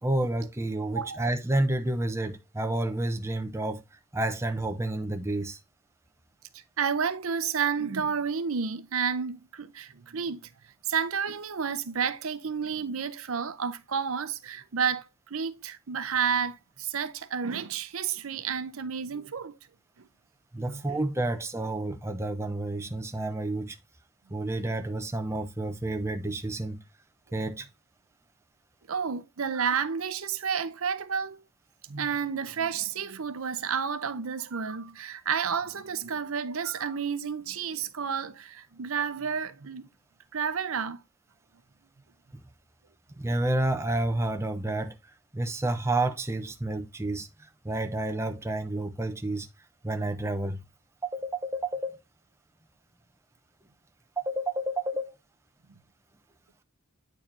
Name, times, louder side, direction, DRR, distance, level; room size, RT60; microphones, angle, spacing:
voice 1, 0.0-3.8 4.1-5.6 20.5-23.8 24.3-26.8 27.3-27.7 42.3-42.4 43.2-45.0 45.3-49.5 49.8-50.6 51.0-52.0 54.2-55.2, right 2 dB, 10° right, 0.6 m, -30 dB
voice 2, 6.5-10.5 10.9-19.6 20.0-20.1 20.6-21.0 28.9-31.4 31.9-39.9 40.3-41.0, right 6 dB, 70° right, 0.7 m, -31 dB
8.9 x 4.7 x 2.7 m
head